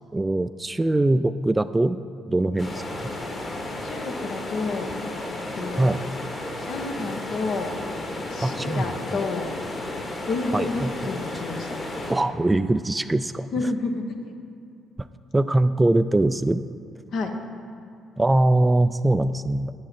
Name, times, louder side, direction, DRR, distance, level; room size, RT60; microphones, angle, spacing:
voice 1, 0.1-2.0 2.3-3.1 5.8-6.0 8.4-8.9 10.5-10.9 12.1-13.5 15.0-15.1 15.3-16.6 18.2-19.7, right 2 dB, 15° right, 13 dB, 0.3 m, -22 dB
sound 1, 2.6-12.1, left 2 dB, 35° left, 2.0 m, -33 dB
voice 2, 3.8-4.9 5.6-6.0 6.6-7.8 8.3-9.5 10.3-11.8 13.5-14.3 17.1-17.4, left 3 dB, 55° left, 4 dB, 0.9 m, -30 dB
11.0 x 8.5 x 4.2 m, 2.6 s
figure-of-eight pair, 45°, 0 cm